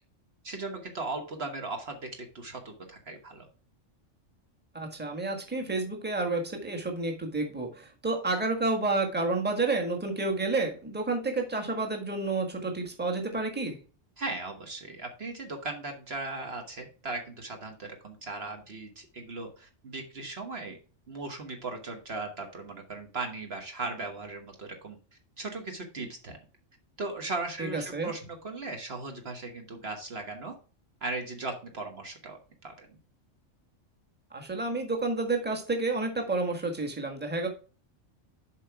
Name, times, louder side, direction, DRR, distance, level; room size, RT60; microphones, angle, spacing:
voice 1, 0.4-3.5 14.2-20.8 21.1-25.0 25.4-26.4 27.0-30.5 31.0-32.4 32.6-32.9, right 3 dB, 55° right, 4 dB, 1.4 m, -37 dB
voice 2, 4.7-13.8 27.6-28.1 34.3-37.5, right 3 dB, 10° right, 3 dB, 1.5 m, -30 dB
7.5 x 4.7 x 4.6 m, 0.36 s
omnidirectional pair, 1.3 m